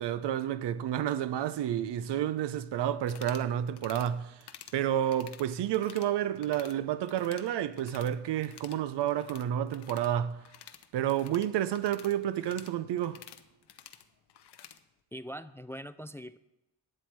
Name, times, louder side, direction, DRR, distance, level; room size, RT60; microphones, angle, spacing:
voice 1, 0.0-4.4 4.7-10.4 10.9-13.2, right 11 dB, 80° right, 0.7 m, -30 dB
sound 1, 3.0-3.5 3.8-4.1 4.4-4.8 5.1-6.1 6.4-6.8 7.1-8.2 8.4-14.8, left 10 dB, 75° left, 0.8 m, -51 dB
voice 2, 15.1-16.4, equal, 5° left, 0.3 m, -42 dB
11.5 x 7.7 x 4.6 m
cardioid pair, 65°, 41 cm